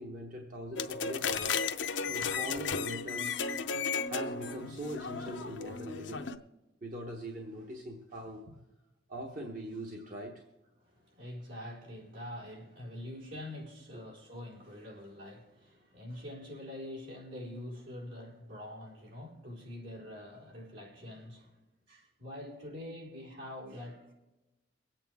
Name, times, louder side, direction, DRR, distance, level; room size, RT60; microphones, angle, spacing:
voice 1, 0.0-1.6 2.1-3.4 4.1-6.3 6.8-8.6 9.1-10.4 13.9-14.0, equal, 45° right, 1 dB, 1.1 m, -42 dB
sound 1, 0.8-6.3, left 5 dB, 70° left, 0.7 m, -34 dB
voice 2, 10.8-21.6 21.9-24.1, left 1 dB, 75° right, -5 dB, 4.4 m, -45 dB
23.5 x 8.9 x 3.5 m, 1.0 s
head